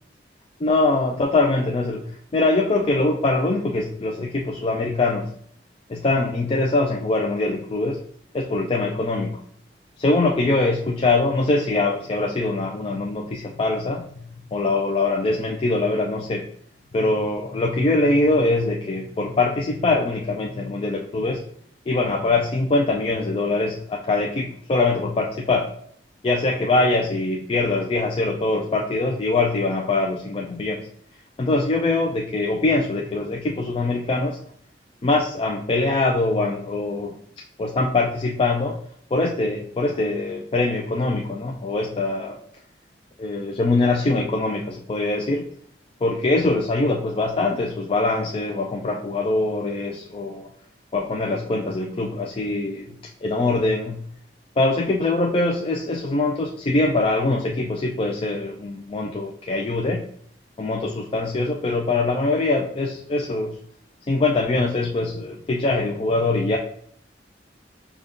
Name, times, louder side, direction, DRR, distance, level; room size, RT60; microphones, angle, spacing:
voice 1, 0.6-2.1 2.3-5.3 5.9-8.0 8.3-9.4 10.0-14.0 14.5-16.4 16.9-21.4 21.9-25.7 26.2-30.9 31.4-34.4 35.0-37.2 37.6-38.8 39.1-42.4 43.2-45.5 46.0-50.5 50.9-53.0 53.2-54.0 54.6-60.0 60.6-63.6 64.1-66.6, left 2 dB, 30° left, 0 dB, 0.4 m, -23 dB
5.1 x 2.4 x 3.6 m, 0.63 s
head